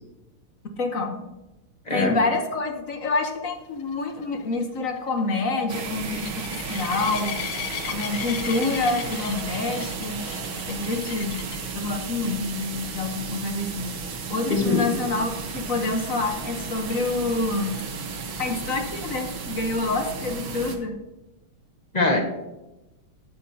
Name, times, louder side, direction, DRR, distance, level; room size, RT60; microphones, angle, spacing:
voice 1, 0.8-1.2 1.9-7.4 7.9-10.2 10.7-11.4 11.7-17.8 18.4-21.0, left 3 dB, 50° left, 4 dB, 1.1 m, -27 dB
sound 1, 3.8-11.7 12.3-12.6 12.9-13.0 13.4-13.5 17.1-17.2, left 10 dB, 85° left, 1.5 m, -37 dB
sound 2, 5.7-20.8, right 4 dB, 70° right, 2.0 m, -34 dB
voice 2, 14.5-14.9 21.9-22.2, left 3 dB, 20° left, 1 dB, 1.3 m, -22 dB
13.0 x 9.4 x 2.8 m, 0.98 s
omnidirectional pair, 2.4 m